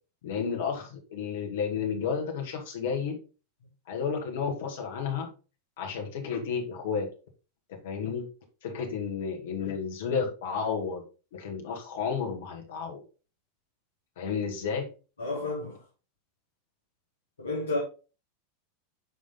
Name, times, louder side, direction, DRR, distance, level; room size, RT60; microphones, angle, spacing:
voice 1, 0.2-3.2 3.9-5.3 5.8-7.1 7.7-8.3 8.6-11.0 11.3-13.0 14.2-14.9, left 6 dB, 65° left, 2.0 m, -32 dB
voice 2, 15.2-15.8 17.4-17.8, left 2 dB, 90° left, 2.8 m, -31 dB
10.0 x 3.7 x 3.8 m
hypercardioid pair, 95°, 0 cm